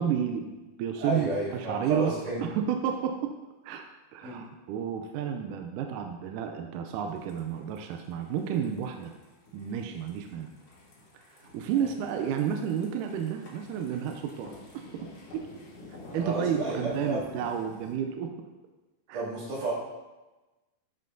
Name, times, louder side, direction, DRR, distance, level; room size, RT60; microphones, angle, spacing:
voice 1, 0.0-2.1 2.4-3.4 3.6-3.9 4.1-9.1 9.5-10.5 11.3-14.5 15.0-15.5 16.1-18.3 19.1-19.2, right 8 dB, 80° right, 4 dB, 1.9 m, -31 dB
voice 2, 1.0-2.4 4.2-4.4 16.1-17.2 19.1-19.7, right 2 dB, 60° right, -8 dB, 4.0 m, -31 dB
sound 1, 7.1-17.9, left 2 dB, 50° left, 2.2 m, -50 dB
12.0 x 5.4 x 2.6 m, 1.1 s
omnidirectional pair, 4.1 m